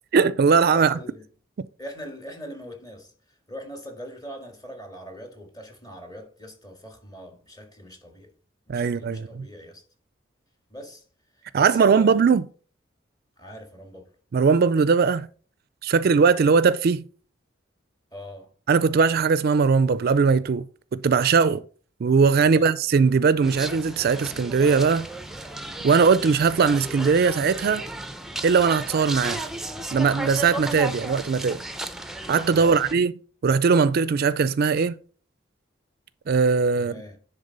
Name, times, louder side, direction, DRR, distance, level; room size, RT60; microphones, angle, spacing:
voice 1, 0.1-1.0 8.7-9.4 11.5-12.5 14.3-15.3 15.8-17.0 18.7-20.6 20.9-21.6 22.0-25.1 25.8-27.8 28.4-29.4 29.9-31.6 32.3-33.1 33.4-34.9 36.3-37.0, right 5 dB, 55° right, 0.4 m, -20 dB
voice 2, 0.7-1.2 1.8-3.1 3.5-8.3 8.7-9.8 10.7-11.0 11.5-12.3 13.4-14.1 18.1-18.5 22.4-22.7 32.5-32.8 36.8-37.2, equal, 20° left, 1.9 m, -41 dB
sound 1, 23.4-32.9, right 1 dB, ahead, 0.6 m, -34 dB
10.5 x 3.7 x 5.3 m
head